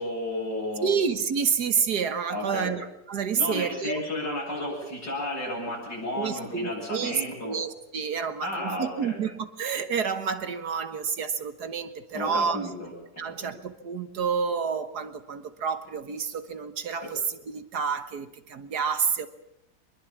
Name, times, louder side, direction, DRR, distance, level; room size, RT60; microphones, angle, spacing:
voice 1, 0.0-0.9 2.3-2.8 3.4-7.6 8.4-9.2 12.1-13.5 17.0-17.1, left 1 dB, 90° left, -5 dB, 8.9 m, -33 dB
voice 2, 0.8-4.4 6.2-12.6 13.2-19.3, right 6 dB, 65° right, 10 dB, 1.8 m, -29 dB
25.0 x 21.0 x 7.3 m, 0.84 s
omnidirectional pair, 1.9 m